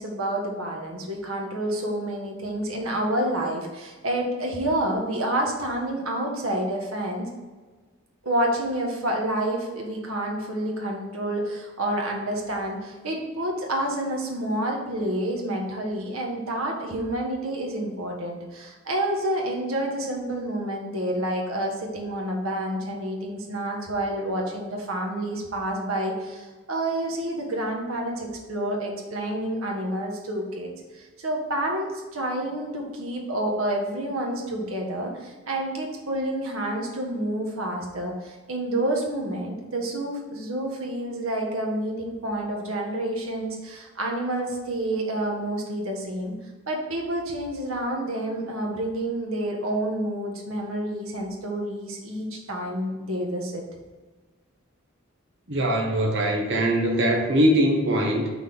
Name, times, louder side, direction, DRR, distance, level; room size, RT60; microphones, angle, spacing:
voice 1, 0.0-7.3 8.2-46.3 46.7-53.6, right 1 dB, 90° right, 1 dB, 1.4 m, -29 dB
voice 2, 55.5-58.3, right 1 dB, 60° right, 0 dB, 1.2 m, -22 dB
5.9 x 3.7 x 6.1 m, 1.3 s
head